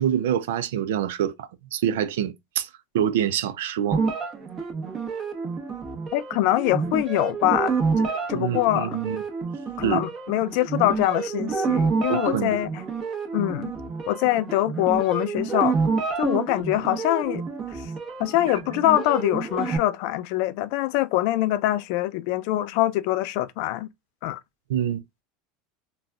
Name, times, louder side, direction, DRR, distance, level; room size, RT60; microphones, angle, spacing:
voice 1, 0.0-2.7 2.9-4.1 8.3-9.2 9.8-10.0 12.1-12.6 18.5-18.6 24.7-25.0, right 9 dB, 85° right, 0.5 m, -26 dB
sound 1, 3.9-19.8, right 5 dB, 35° right, 1.0 m, -28 dB
voice 2, 6.1-9.0 9.8-12.7 13.3-13.7 14.1-15.8 16.2-17.9 18.2-23.9 24.2-24.4, left 15 dB, 65° left, 0.4 m, -24 dB
4.0 x 2.3 x 2.3 m
supercardioid pair, 120°, 0 cm